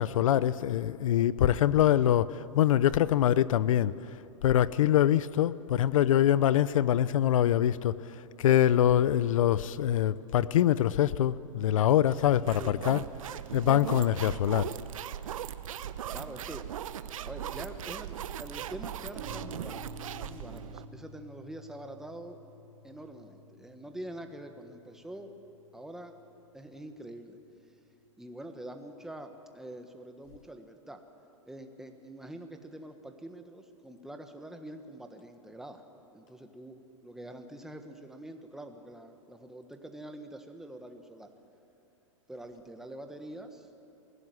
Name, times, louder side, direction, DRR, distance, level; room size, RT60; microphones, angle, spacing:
voice 1, 0.0-3.9 4.4-8.0 8.4-13.0 13.5-14.7, left 11 dB, 80° left, 0.7 m, -24 dB
sound 1, 12.1-20.9, right 10 dB, 85° right, 0.8 m, -39 dB
voice 2, 16.1-16.6 17.2-19.8 20.1-22.4 22.8-25.3 25.7-26.2 26.5-27.4 28.2-31.0 31.5-35.8 36.1-41.3 42.3-43.7, right 1 dB, 5° right, 1.4 m, -45 dB
sound 2, 19.2-27.0, right 1 dB, 60° right, 2.5 m, -50 dB
22.0 x 16.5 x 9.6 m
hypercardioid pair, 140°, 17 cm